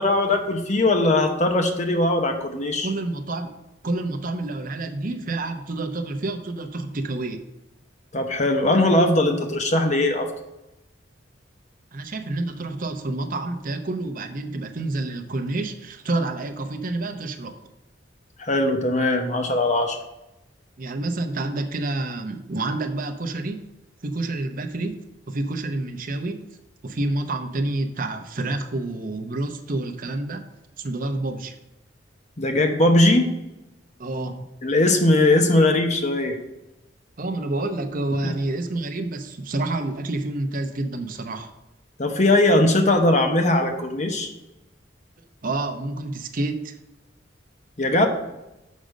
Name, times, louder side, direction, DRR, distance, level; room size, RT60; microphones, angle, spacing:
voice 1, 0.0-2.9 8.1-10.3 18.4-20.0 32.4-33.3 34.6-36.4 38.2-38.3 42.0-44.3 47.8-48.1, left 2 dB, 40° left, 5 dB, 1.0 m, -20 dB
voice 2, 2.8-3.5 3.8-7.4 11.9-17.6 20.8-23.6 24.0-25.0 25.3-26.4 26.8-30.4 30.8-31.5 34.0-34.5 37.2-41.5 45.4-46.8, right 2 dB, 50° right, 6 dB, 0.8 m, -28 dB
6.4 x 5.2 x 6.4 m, 0.94 s
head